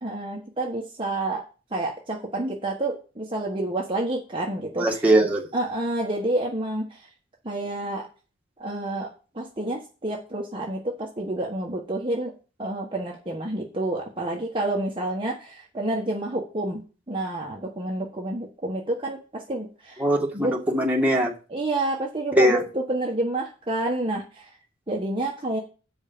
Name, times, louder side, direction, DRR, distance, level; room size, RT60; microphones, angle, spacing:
voice 1, 0.0-1.4 1.7-5.0 5.5-7.1 7.4-8.1 8.6-12.3 12.6-20.0 20.3-20.5 21.5-24.5 24.9-25.6, right 2 dB, 25° right, 1.4 m, -29 dB
voice 2, 4.7-5.4 20.0-21.3 22.4-22.6, right 1 dB, 10° right, 2.0 m, -21 dB
8.4 x 5.5 x 6.8 m
head